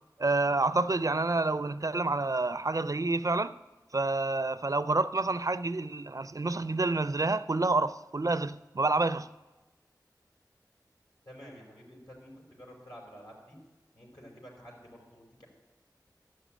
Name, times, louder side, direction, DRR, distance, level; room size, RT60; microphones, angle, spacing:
voice 1, 0.2-3.5 3.9-9.3, right 3 dB, 50° right, 0.4 m, -28 dB
voice 2, 11.3-13.6 13.9-15.5, equal, 70° left, 5.3 m, -50 dB
13.5 x 6.1 x 9.0 m
wide cardioid pair, 45°, 7 cm